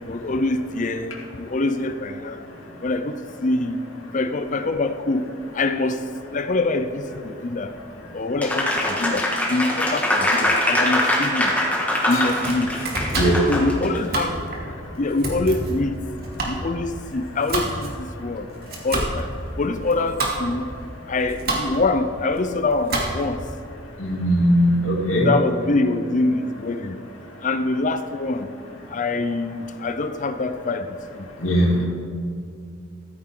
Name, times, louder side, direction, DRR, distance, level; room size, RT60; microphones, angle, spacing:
voice 1, 0.0-2.4 2.8-3.1 3.4-3.8 4.1-5.2 5.5-6.0 6.3-7.7 8.1-9.2 9.5-11.5 12.1-12.7 13.5-14.3 15.0-16.0 16.5-18.5 18.8-19.3 19.6-20.7 21.1-23.4 25.2-26.9 27.4-28.5 28.9-30.9, left 2 dB, 40° left, 9 dB, 0.6 m, -24 dB
Applause, 8.4-14.0, left 1 dB, 10° left, 2.0 m, -22 dB
Domestic sounds home sounds, 12.1-23.4, right 2 dB, 50° right, 2.5 m, -29 dB
voice 2, 13.1-13.5 24.0-25.3 31.4-31.8, equal, 80° left, -3 dB, 3.0 m, -19 dB
14.5 x 14.0 x 3.8 m, 2.3 s
head